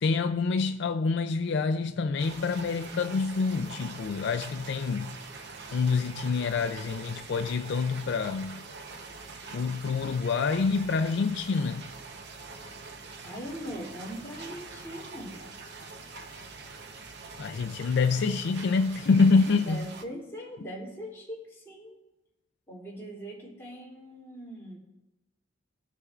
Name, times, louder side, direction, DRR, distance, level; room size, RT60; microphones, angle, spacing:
voice 1, 0.0-5.2 5.7-8.7 9.5-11.9 17.4-19.8, left 4 dB, 65° left, 0.4 m, -26 dB
sound 1, 2.2-20.0, right 4 dB, 60° right, 0.8 m, -44 dB
voice 2, 13.2-15.4 19.6-22.0 22.7-24.8, equal, 15° left, 2.7 m, -41 dB
19.5 x 6.7 x 2.4 m
head